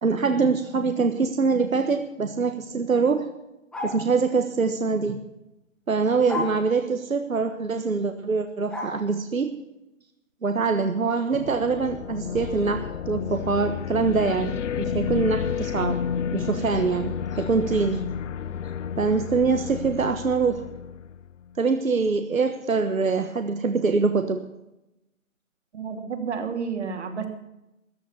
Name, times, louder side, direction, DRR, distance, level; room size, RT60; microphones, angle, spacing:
voice 1, 0.0-3.3 3.8-5.2 5.9-9.5 10.4-16.0 16.3-18.0 19.0-20.7 21.6-24.4, right 4 dB, 90° right, 7 dB, 1.4 m, -24 dB
sound 1, 3.7-4.1 6.3-6.6 8.7-9.0, left 2 dB, ahead, 1.5 m, -30 dB
sound 2, 11.3-21.5, left 8 dB, 65° left, 0.7 m, -31 dB
voice 2, 25.7-27.3, right 6 dB, 55° right, 6 dB, 2.9 m, -30 dB
14.5 x 11.0 x 7.2 m, 0.90 s
figure-of-eight pair, 145°, 40 cm